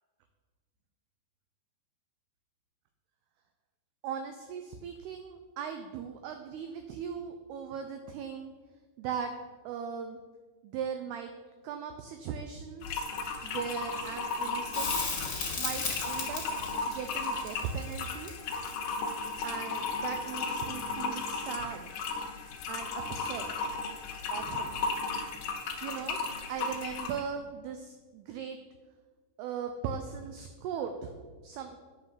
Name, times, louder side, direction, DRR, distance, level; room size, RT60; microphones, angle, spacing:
voice 1, 4.0-8.5 9.0-9.3 9.7-10.2 10.6-11.3 11.6-13.1 13.4-15.0 15.6-16.4 16.9-18.3 19.4-21.9 22.7-23.5 24.3-24.8 25.8-26.2 26.5-28.6 29.4-31.1 31.4-31.8, right 7 dB, 85° right, 6 dB, 2.3 m, -38 dB
sound 1, 12.8-27.2, left 4 dB, 85° left, 1.8 m, -35 dB
Crackle, 14.7-19.9 22.6-22.7, left 4 dB, 45° left, 1.3 m, -36 dB
9.4 x 5.6 x 7.4 m, 1.4 s
omnidirectional pair, 5.4 m